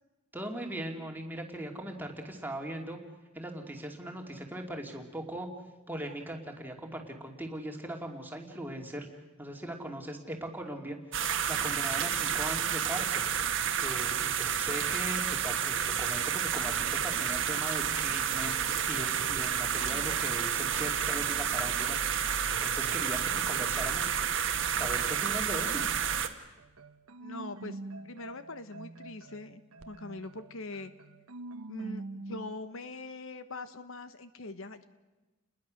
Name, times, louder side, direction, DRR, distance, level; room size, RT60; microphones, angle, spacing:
voice 1, 0.3-3.0 3.3-5.5 5.9-9.1 9.4-11.0 11.5-13.2 13.8-22.3 22.6-24.2 24.5-25.8, right 1 dB, 10° right, 2 dB, 2.6 m, -39 dB
sound 1, 11.1-26.3, right 8 dB, 55° right, 1.6 m, -30 dB
sound 2, 17.9-24.2 24.5-32.5, right 2 dB, 80° right, 1.1 m, -47 dB
voice 2, 27.2-27.8 28.0-29.6 29.9-30.9 31.7-34.8, left 2 dB, 60° left, 11 dB, 1.0 m, -42 dB
30.0 x 21.0 x 6.5 m, 1.1 s
head